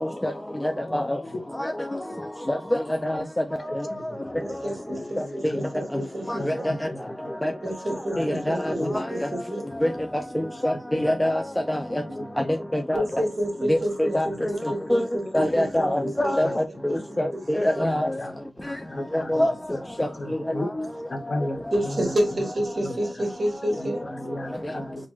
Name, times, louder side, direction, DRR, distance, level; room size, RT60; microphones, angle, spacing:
voice 1, 0.0-0.3 0.9-1.2 1.6-1.7 2.5-3.2 5.4-5.5 6.3-6.5 7.4-7.5 8.2-8.8 9.2-9.3 9.8-9.9 10.3-11.4 11.7-11.8 12.7-13.0 13.7-15.1 15.3-18.1 19.1-19.5 20.0-20.1, left 1 dB, 15° left, 0.4 m, -24 dB
voice 2, 4.4-6.7 7.6-9.6 12.9-16.5 16.9-17.0 17.3-17.4 17.7-17.9 19.2-19.4 20.2-20.9 21.7-24.0, right 1 dB, 45° right, 1.3 m, -30 dB
voice 3, 4.9-5.7 6.0-6.1 6.4-6.5 8.1-8.3 8.8-9.0 9.3-9.4 12.2-12.5 16.0-16.1 16.9-17.0 18.0-19.4 20.2-20.7 21.1-21.6 22.0-22.1 22.8-23.0 23.8-25.1, left 1 dB, 55° left, 0.8 m, -34 dB
4.0 x 2.4 x 2.9 m
wide cardioid pair, 75°, 0 cm